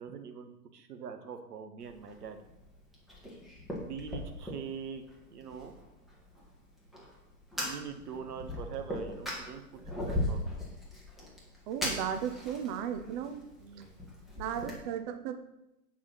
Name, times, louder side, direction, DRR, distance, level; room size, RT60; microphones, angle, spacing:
voice 1, 0.0-2.4 3.8-5.0 5.3-5.7 7.6-9.6 10.0-10.4 13.6-13.9, right 7 dB, 80° right, 7 dB, 1.3 m, -43 dB
Fire, 1.8-14.7, left 1 dB, ahead, 2.1 m, -40 dB
voice 2, 11.7-13.5 14.4-15.4, right 9 dB, 30° right, 8 dB, 0.5 m, -35 dB
8.8 x 4.7 x 5.7 m, 0.90 s
hypercardioid pair, 120°, 46 cm